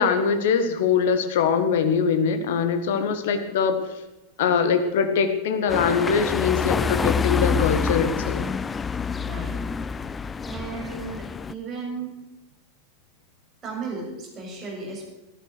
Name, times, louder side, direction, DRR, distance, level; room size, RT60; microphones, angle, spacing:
voice 1, 0.0-3.8 4.4-8.5, left 6 dB, 55° left, 8 dB, 1.8 m, -22 dB
sound 1, 5.7-11.5, left 5 dB, 15° left, 0.5 m, -27 dB
voice 2, 9.1-9.6 10.5-12.2 13.6-15.1, right 4 dB, 25° right, -3 dB, 7.1 m, -35 dB
14.0 x 13.5 x 6.6 m, 1.0 s
figure-of-eight pair, 90°, 0 cm